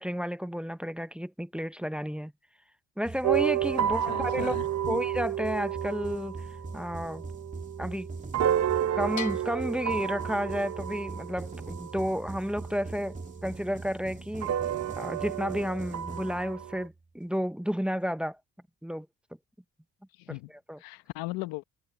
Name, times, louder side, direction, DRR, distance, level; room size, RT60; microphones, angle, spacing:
voice 1, 0.0-2.3 3.0-4.6 4.9-6.5 6.7-7.3 7.8-8.1 8.9-13.1 13.4-14.5 15.0-18.4 18.8-19.1 20.7-20.8, equal, 5° right, 1.0 m, -31 dB
sound 1, 3.0-16.9, right 3 dB, 20° right, 3.0 m, -42 dB
sound 2, 3.2-13.3 14.4-16.9, right 10 dB, 50° right, 1.0 m, -31 dB
voice 2, 4.0-5.0 20.1-20.5 20.8-21.6, left 20 dB, 90° left, 1.2 m, -38 dB
Bell, 9.2-10.9, left 8 dB, 55° left, 1.8 m, -43 dB
supercardioid pair, 75°, 35 cm